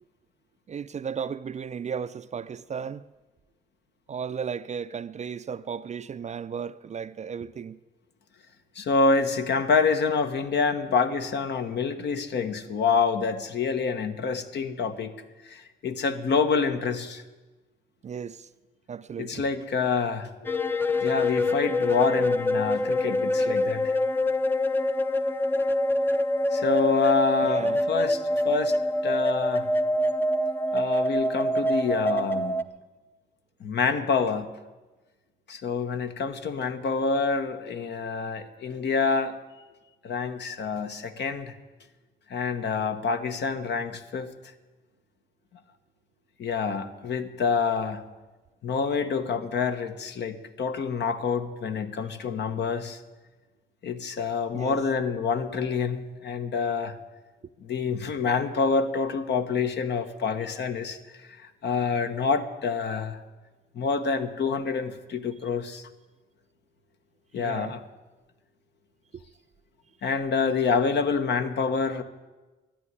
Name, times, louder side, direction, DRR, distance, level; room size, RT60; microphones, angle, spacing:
voice 1, 0.7-3.0 4.1-7.8 18.0-18.5 18.9-19.5 27.4-27.8 54.5-54.8 67.4-67.8, right 7 dB, 35° right, 0.5 m, -35 dB
voice 2, 8.7-15.1 15.4-17.2 19.2-20.6 21.0-24.0 26.5-28.8 29.0-29.7 30.7-32.5 33.6-34.5 35.5-39.4 40.0-41.5 42.3-44.3 46.4-48.0 48.6-53.0 53.8-57.0 57.6-63.2 63.7-65.9 67.3-67.8 70.0-72.0, left 5 dB, 60° left, 1.2 m, -27 dB
sound 1, 20.4-32.6, left 1 dB, 10° left, 0.6 m, -25 dB
12.5 x 10.0 x 9.6 m
cardioid pair, 90°, 20 cm